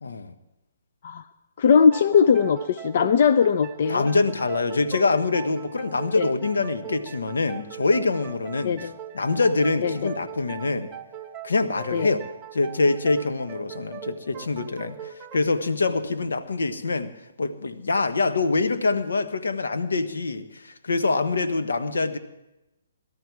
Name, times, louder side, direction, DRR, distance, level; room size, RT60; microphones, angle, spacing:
voice 1, 0.0-0.3 3.9-8.9 9.1-10.9 11.4-12.2 12.5-17.1 17.4-22.2, left 3 dB, 80° left, 9 dB, 1.2 m, -25 dB
voice 2, 1.6-4.1 6.2-6.3 8.6-8.9 9.8-10.1 11.9-12.1, left 6 dB, 50° left, 11 dB, 0.5 m, -20 dB
sound 1, 1.7-17.0, right 8 dB, 20° right, 0.7 m, -40 dB
18.5 x 13.0 x 4.7 m, 0.95 s
hypercardioid pair, 140°, 0 cm